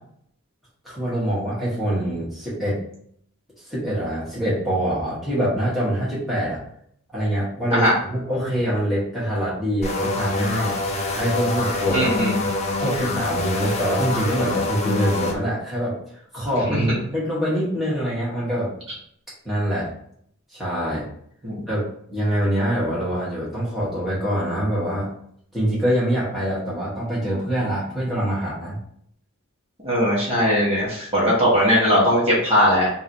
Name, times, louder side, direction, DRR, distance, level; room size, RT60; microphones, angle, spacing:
voice 1, 0.8-2.8 3.7-6.6 7.1-10.7 11.1-12.3 12.8-18.7 19.4-19.9 20.5-21.0 21.7-25.1 25.5-28.8, equal, ahead, -9 dB, 1.5 m, -24 dB
sound 1, 9.8-15.3, left 2 dB, 30° left, 0.6 m, -25 dB
voice 2, 11.9-12.3 16.7-17.0 21.4-21.6 29.8-32.9, equal, 30° right, -6 dB, 1.6 m, -19 dB
3.9 x 2.7 x 4.5 m, 0.67 s
head